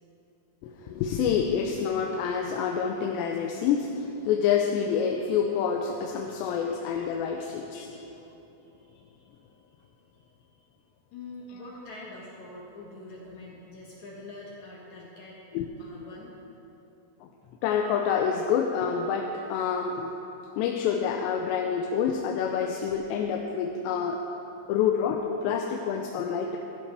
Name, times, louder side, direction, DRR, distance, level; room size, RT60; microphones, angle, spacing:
voice 1, 0.6-8.0 15.5-15.7 17.2-17.3 17.6-20.1 20.6-24.2 24.7-26.6, left 7 dB, 90° left, 2 dB, 2.9 m, -27 dB
voice 2, 7.3-8.0 8.6-9.8 10.1-10.6 11.1-15.4 15.8-16.3, left 2 dB, 65° left, -4 dB, 1.9 m, -46 dB
15.5 x 14.0 x 3.4 m, 3.0 s
omnidirectional pair, 4.9 m